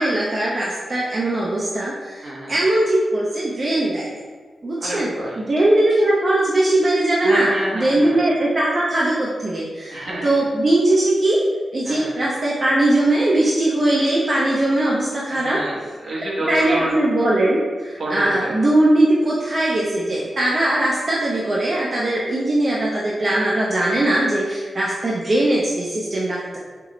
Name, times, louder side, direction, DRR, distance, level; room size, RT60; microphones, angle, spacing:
voice 1, 0.0-4.1 4.6-11.4 11.7-15.6 16.5-26.6, right 1 dB, 50° right, -5 dB, 0.6 m, -20 dB
voice 2, 2.2-2.6 4.8-5.4 7.2-8.2 9.9-10.3 11.8-12.1 15.3-16.9 18.0-18.5, right 1 dB, 70° right, -5 dB, 1.1 m, -28 dB
4.5 x 2.0 x 3.8 m, 1.5 s
cardioid pair, 55°, 0 cm